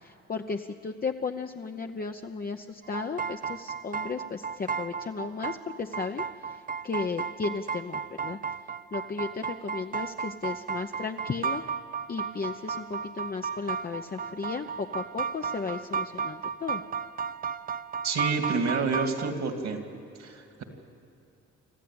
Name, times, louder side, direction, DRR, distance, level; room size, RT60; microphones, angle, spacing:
voice 1, 0.0-6.2 6.5-8.4 8.9-11.6 12.1-16.8, left 4 dB, 30° left, 4 dB, 0.8 m, -35 dB
sound 1, 2.8-19.3, right 6 dB, 30° right, 0.5 m, -34 dB
voice 2, 18.0-19.8 20.2-20.6, right 4 dB, 60° right, 5 dB, 2.5 m, -29 dB
26.0 x 14.0 x 8.8 m, 2.8 s
cardioid pair, 90°, 30 cm